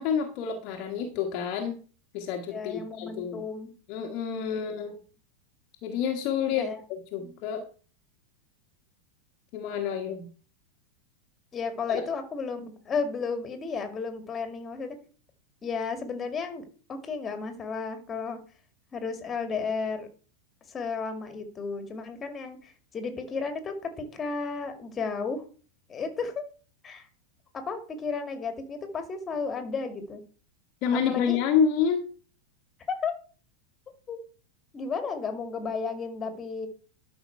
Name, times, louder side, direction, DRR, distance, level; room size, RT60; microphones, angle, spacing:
voice 1, 0.0-1.8 2.1-3.4 3.9-5.0 5.8-7.6 9.5-10.3 11.9-12.0 30.8-32.0, left 7 dB, 40° left, 3 dB, 1.5 m, -28 dB
voice 2, 2.5-3.7 4.5-5.0 6.6-6.8 7.2-7.3 11.5-15.0 15.6-18.4 18.9-20.1 20.7-25.4 25.9-26.5 26.8-27.1 27.5-30.2 30.9-31.4 32.9-33.2 34.1-34.2 34.7-36.7, left 5 dB, 20° left, 7 dB, 2.1 m, -33 dB
12.0 x 5.9 x 4.5 m, 0.39 s
figure-of-eight pair, 90°, 0 cm